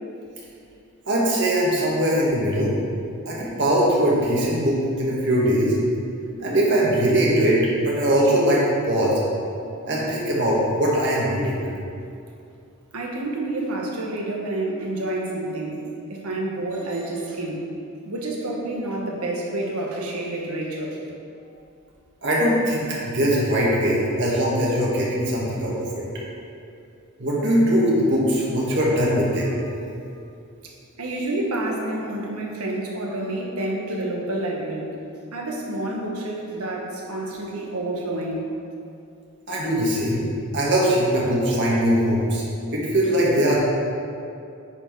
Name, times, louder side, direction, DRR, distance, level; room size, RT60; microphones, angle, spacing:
voice 1, 1.1-2.7 3.3-5.8 6.4-9.2 9.9-11.6 22.2-26.0 27.2-29.5 39.5-40.2 40.5-42.4 42.7-43.6, equal, 55° right, -5 dB, 1.8 m, -21 dB
voice 2, 12.9-17.7 18.0-21.0 30.6-30.7 31.0-35.0 35.3-38.5, right 1 dB, 80° right, -1 dB, 1.4 m, -29 dB
9.7 x 4.7 x 4.7 m, 2.5 s
head